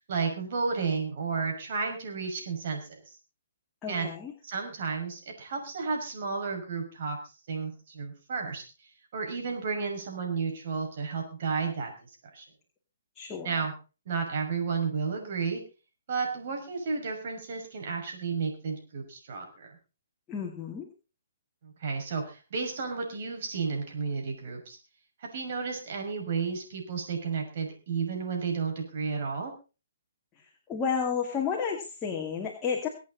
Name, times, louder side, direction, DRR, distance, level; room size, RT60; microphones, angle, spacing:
voice 1, 0.1-3.0 3.9-4.1 4.4-7.2 7.5-8.6 9.1-11.9 12.3-12.4 13.4-13.7 14.1-15.6 16.1-19.8 21.6-24.8 25.2-29.5, right 5 dB, 55° right, 3 dB, 5.8 m, -32 dB
voice 2, 3.8-4.3 13.2-13.6 20.3-20.9 30.7-32.9, left 6 dB, 15° left, -1 dB, 2.5 m, -31 dB
23.5 x 8.5 x 4.1 m, 0.33 s
hypercardioid pair, 155°, 0 cm